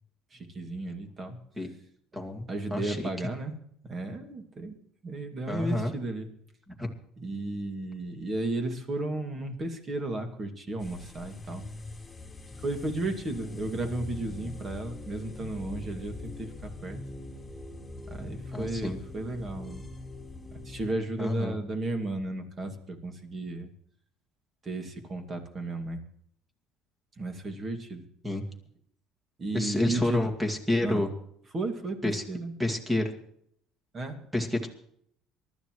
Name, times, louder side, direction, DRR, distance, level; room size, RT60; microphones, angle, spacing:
voice 1, 0.3-1.4 2.5-3.6 3.8-4.8 5.0-6.3 7.2-11.7 12.6-17.0 18.1-19.9 20.5-23.7 24.6-26.0 27.2-28.0 29.4-30.3 30.8-31.1 31.5-32.6 33.9-34.2, right 2 dB, 30° right, 5 dB, 2.3 m, -34 dB
voice 2, 2.1-3.0 5.5-5.9 6.8-6.9 18.5-19.0 21.2-21.6 28.2-28.4 29.5-31.1 32.0-32.2 32.6-33.1 34.3-34.7, left 1 dB, 10° right, 3 dB, 2.1 m, -29 dB
sound 1, 10.8-20.9, left 2 dB, 10° left, 2.4 m, -43 dB
24.0 x 12.5 x 3.1 m, 0.68 s
cardioid pair, 130°, 0 cm